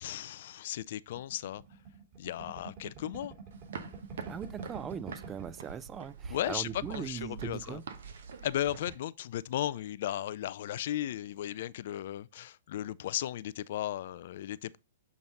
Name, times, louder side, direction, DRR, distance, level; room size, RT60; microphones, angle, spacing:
voice 1, 0.0-1.6 2.2-3.3 6.3-7.8 8.4-14.8, left 12 dB, 55° left, 0.3 m, -35 dB
sound 1, 1.1-5.7 6.0-6.1 6.4-7.0, right 4 dB, 40° right, 3.5 m, -47 dB
sound 2, 3.5-8.9, right 6 dB, 65° right, 0.9 m, -45 dB
voice 2, 4.3-7.8, right 8 dB, 20° right, 0.4 m, -40 dB
7.2 x 4.0 x 3.7 m
hypercardioid pair, 115°, 0 cm